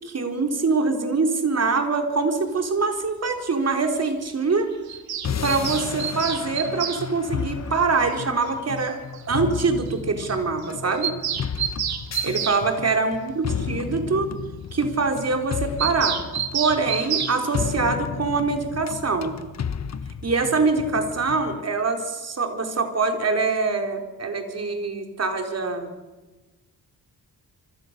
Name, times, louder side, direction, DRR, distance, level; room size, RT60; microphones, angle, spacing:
voice 1, 0.0-4.7 5.4-9.0 9.3-11.1 12.2-14.3 14.7-16.2 16.5-19.4 20.2-25.9, right 4 dB, 45° right, 5 dB, 4.1 m, -24 dB
Bird vocalization bird call bird song, 4.9-7.0 8.5-8.6 8.8-8.9 9.1-9.2 9.5-9.6 9.9-10.0 10.2-10.4 10.6-12.6 15.8-17.4, right 8 dB, 85° right, 2.7 m, -28 dB
sound 1, 5.2-21.6, left 7 dB, 45° left, 1.2 m, -33 dB
27.0 x 25.5 x 6.8 m, 1.2 s
wide cardioid pair, 120°, 36 cm